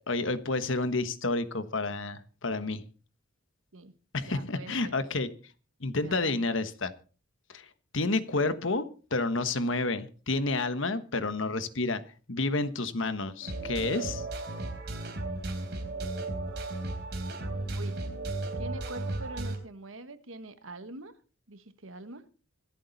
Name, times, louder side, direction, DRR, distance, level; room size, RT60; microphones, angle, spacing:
voice 1, 0.1-2.8 4.1-5.3 5.8-6.9 7.5-7.7 7.9-12.0 12.3-14.2, left 3 dB, 65° left, 1.3 m, -30 dB
voice 2, 4.2-4.9 6.0-6.5 17.7-18.1 18.5-21.1 21.5-22.3, right 2 dB, 75° right, 1.4 m, -44 dB
sound 1, 13.4-19.6, right 2 dB, 50° right, 3.7 m, -34 dB
25.5 x 8.6 x 4.1 m
head